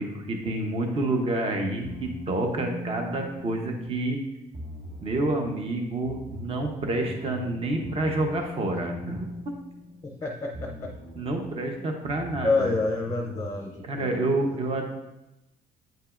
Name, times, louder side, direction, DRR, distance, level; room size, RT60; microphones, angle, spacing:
voice 1, 0.0-4.2 5.0-9.2 11.2-12.7 13.8-14.9, right 2 dB, 35° right, 3 dB, 0.9 m, -28 dB
sound 1, 1.8-4.1 4.5-5.4 6.0-10.2 10.5-11.4 12.0-13.8, left 1 dB, 50° right, 1.6 m, -40 dB
voice 2, 10.0-10.9 11.8-11.9 12.4-14.6, left 3 dB, 15° left, 2 dB, 0.6 m, -29 dB
8.8 x 5.4 x 2.5 m, 0.92 s
cardioid pair, 110°, 17 cm